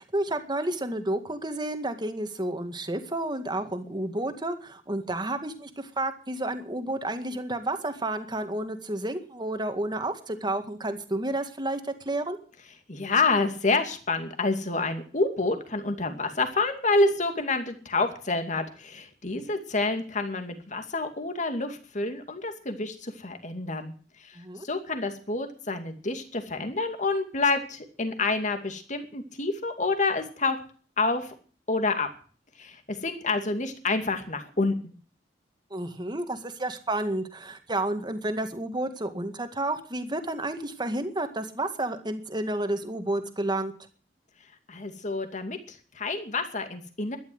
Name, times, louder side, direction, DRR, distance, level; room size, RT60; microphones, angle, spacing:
voice 1, 0.0-12.4 24.4-24.7 35.7-43.7, right 1 dB, 25° right, 8 dB, 1.9 m, -31 dB
voice 2, 12.9-23.9 24.2-30.6 31.0-31.3 31.7-32.1 32.6-34.9 44.7-47.2, left 3 dB, 45° left, 7 dB, 2.4 m, -28 dB
12.5 x 11.5 x 7.9 m, 0.42 s
head